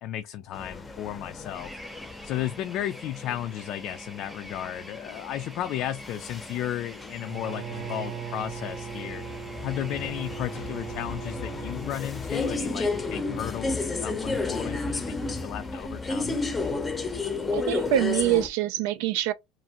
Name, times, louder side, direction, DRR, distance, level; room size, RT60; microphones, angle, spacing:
voice 1, 0.0-1.7 2.2-9.2 9.6-16.4, left 12 dB, 55° left, 0.3 m, -34 dB
sound 1, 0.5-18.5, left 3 dB, 15° left, 0.6 m, -33 dB
sound 2, 1.5-14.9, equal, 10° right, 0.9 m, -48 dB
Bowed string instrument, 7.2-12.0, right 8 dB, 55° right, 0.8 m, -38 dB
voice 2, 17.5-19.3, right 12 dB, 75° right, 0.4 m, -25 dB
2.6 x 2.4 x 2.8 m
supercardioid pair, 130°, 0 cm